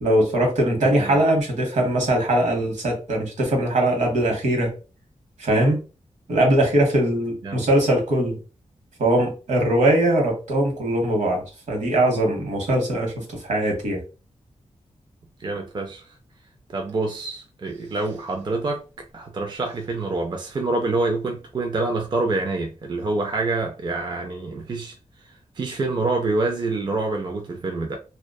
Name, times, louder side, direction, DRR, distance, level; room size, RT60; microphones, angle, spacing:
voice 1, 0.0-4.7 5.4-5.8 6.3-8.4 9.0-14.0, right 1 dB, 75° right, 0.9 m, -21 dB
voice 2, 0.8-1.2 7.4-7.7 15.4-16.1 16.7-24.9 25.2-28.0, right 3 dB, 35° right, 0.3 m, -27 dB
2.5 x 2.2 x 2.2 m
wide cardioid pair, 130°, 12 cm